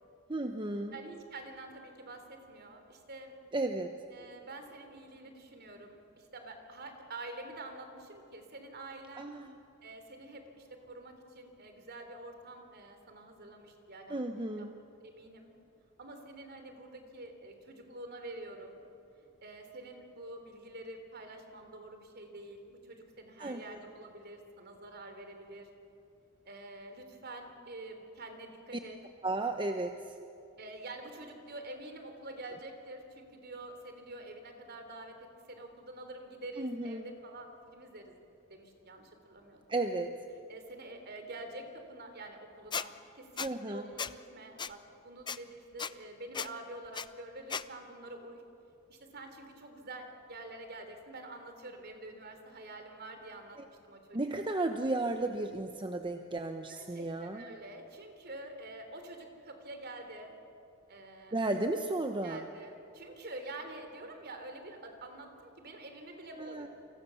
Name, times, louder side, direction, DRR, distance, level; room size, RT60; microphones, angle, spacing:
voice 1, 0.3-1.0 3.5-3.9 9.2-9.5 14.1-14.7 23.4-23.8 29.2-30.2 36.6-37.1 39.7-40.2 43.4-43.9 53.6-53.7 54.1-57.5 61.3-62.4 66.4-66.7, right 2 dB, 25° right, 5 dB, 1.0 m, -34 dB
voice 2, 0.9-3.4 4.1-9.3 9.8-14.2 14.6-14.7 15.0-15.5 16.0-18.8 19.2-25.7 26.5-29.0 30.6-38.2 38.5-39.6 40.5-48.4 48.9-53.6 53.8-54.2 56.7-60.4 60.9-61.3 62.2-66.7, right 2 dB, 50° right, 6 dB, 3.4 m, -47 dB
Squeak, 42.7-42.9 43.4-43.5 44.0-44.1 44.6-44.7 45.3-45.4 45.8-45.9 46.3-46.5 46.9-47.1 47.5-47.6, left 6 dB, 20° left, 0.6 m, -35 dB
29.5 x 24.5 x 7.1 m, 2.7 s
head